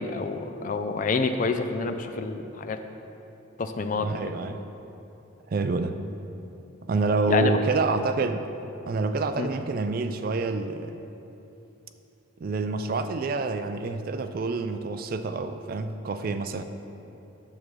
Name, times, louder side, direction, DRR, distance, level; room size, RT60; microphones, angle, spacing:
voice 1, 0.0-2.8 3.6-4.1 7.3-7.5 9.4-9.5, left 4 dB, 40° left, 7 dB, 0.4 m, -27 dB
voice 2, 4.0-4.6 5.5-6.0 6.9-8.5 8.9-11.0 12.4-16.6, right 3 dB, 45° right, 9 dB, 0.3 m, -27 dB
10.5 x 7.2 x 3.2 m, 3.0 s
head